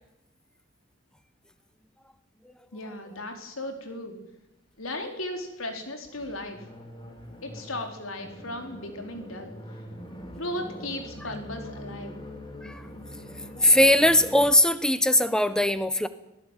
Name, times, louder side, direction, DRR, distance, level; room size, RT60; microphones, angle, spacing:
voice 1, 2.7-4.2 4.8-6.6 7.4-9.5 10.3-12.1, left 1 dB, 85° left, 4 dB, 4.3 m, -36 dB
sound 1, 6.1-14.5, equal, 25° left, 3.2 m, -43 dB
voice 2, 13.3-16.1, left 1 dB, 5° left, 13 dB, 1.0 m, -20 dB
24.0 x 17.5 x 9.2 m, 0.91 s
head